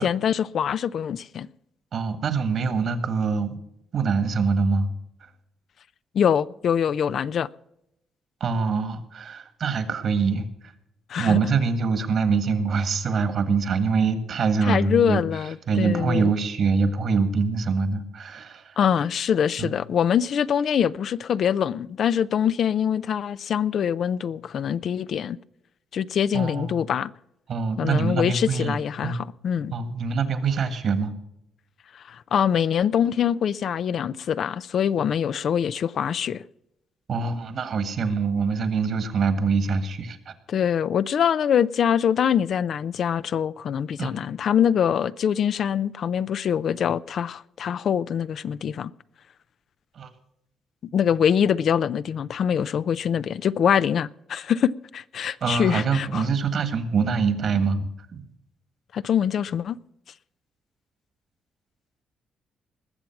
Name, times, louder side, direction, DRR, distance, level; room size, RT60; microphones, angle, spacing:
voice 1, 0.0-1.5 6.1-7.5 11.1-11.4 14.6-16.3 18.8-25.4 25.9-27.1 27.8-29.7 31.9-36.4 40.5-48.9 50.9-56.3 58.9-59.8, left 8 dB, 60° left, 0.4 m, -24 dB
voice 2, 1.9-3.6 3.9-4.9 8.4-10.7 11.2-15.2 15.7-18.7 19.6-19.7 26.3-26.7 27.5-28.8 29.0-29.2 29.7-31.2 37.1-40.3 44.0-44.2 50.0-50.1 55.4-58.2, right 5 dB, 60° right, 1.7 m, -24 dB
20.5 x 7.1 x 5.9 m
cardioid pair, 90°, 0 cm